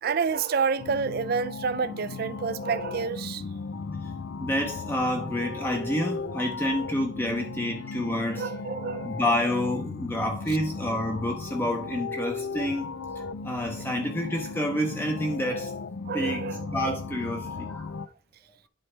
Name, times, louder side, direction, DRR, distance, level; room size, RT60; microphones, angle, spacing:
voice 1, 0.0-3.4 8.4-9.2 16.1-16.7, right 5 dB, 50° right, 0.4 m, -28 dB
Drake Interlude Type Piano, 0.8-18.1, left 4 dB, 80° left, 0.4 m, -36 dB
voice 2, 4.4-15.7 16.1-17.9, left 1 dB, 10° left, 0.8 m, -29 dB
10.5 x 4.7 x 3.3 m
head